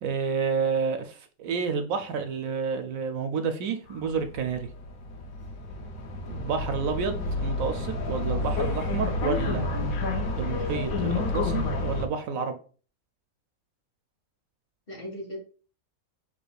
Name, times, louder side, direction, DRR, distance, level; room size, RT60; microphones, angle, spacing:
voice 1, 0.0-4.7 6.3-9.7 10.4-12.6, right 5 dB, 70° right, 1.0 m, -30 dB
sound 1, 3.9-12.1, left 2 dB, 75° left, 1.2 m, -30 dB
voice 2, 7.0-7.4 14.9-15.4, equal, 40° left, 1.8 m, -38 dB
6.7 x 3.3 x 2.3 m
omnidirectional pair, 1.5 m